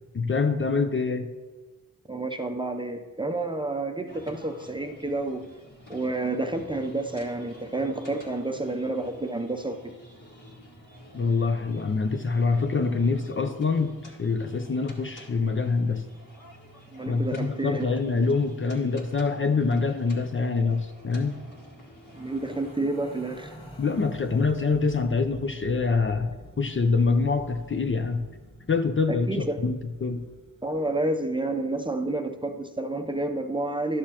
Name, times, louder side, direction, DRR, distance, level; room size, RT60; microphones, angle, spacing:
voice 1, 0.1-1.3 11.1-16.0 17.1-21.4 23.8-28.2 28.7-30.2, left 4 dB, 35° left, 7 dB, 0.6 m, -25 dB
voice 2, 2.1-5.5 5.9-9.9 16.9-17.9 22.1-23.5 29.1-29.6 30.6-34.0, right 2 dB, 15° right, 5 dB, 0.6 m, -30 dB
sound 1, 4.1-22.7, equal, 55° left, 1.8 m, -48 dB
sound 2, 22.0-31.3, left 1 dB, 15° left, 1.6 m, -48 dB
11.5 x 6.7 x 2.9 m, 1.2 s
cardioid pair, 70°, 36 cm